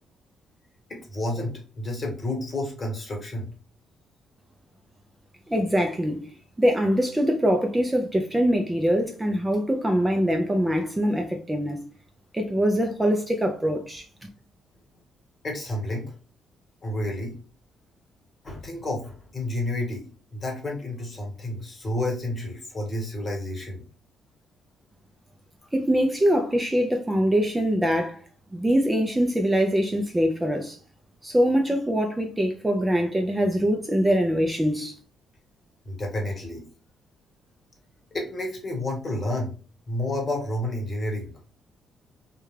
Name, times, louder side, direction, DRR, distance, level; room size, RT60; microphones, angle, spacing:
voice 1, 0.9-3.5 15.4-16.0 16.8-17.3 18.4-20.0 20.3-23.8 35.8-36.6 38.1-39.5 39.9-41.3, left 1 dB, 35° left, 1.2 m, -30 dB
voice 2, 5.5-6.3 6.6-11.9 12.3-14.0 25.7-28.2 28.5-30.8 31.2-34.9, equal, 15° right, 0.4 m, -23 dB
2.3 x 2.2 x 3.2 m
cardioid pair, 90°, 0 cm